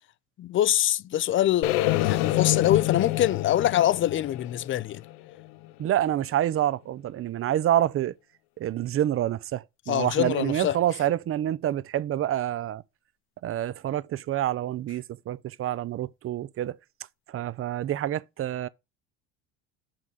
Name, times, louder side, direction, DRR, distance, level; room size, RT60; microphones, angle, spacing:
voice 1, 0.4-1.7 2.0-5.0 9.9-10.8, left 12 dB, 40° left, 0.5 m, -24 dB
sound 1, 1.6-5.7, left 16 dB, 85° left, 0.6 m, -27 dB
voice 2, 5.8-8.1 8.6-12.8 13.4-16.8 17.3-18.7, right 12 dB, 45° right, 0.6 m, -27 dB
6.5 x 5.8 x 4.8 m
supercardioid pair, 95°, 31 cm